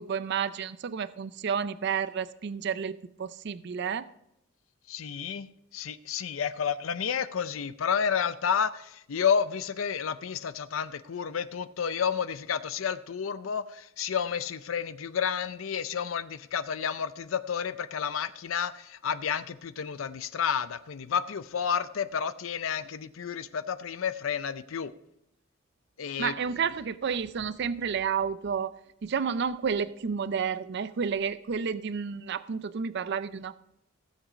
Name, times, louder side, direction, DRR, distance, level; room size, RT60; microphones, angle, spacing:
voice 1, 0.0-4.1 26.2-28.7 29.0-33.6, right 6 dB, 55° right, 0.4 m, -31 dB
voice 2, 4.9-5.5 5.7-24.9 26.0-26.3, left 7 dB, 75° left, 0.5 m, -31 dB
16.0 x 7.5 x 5.0 m
head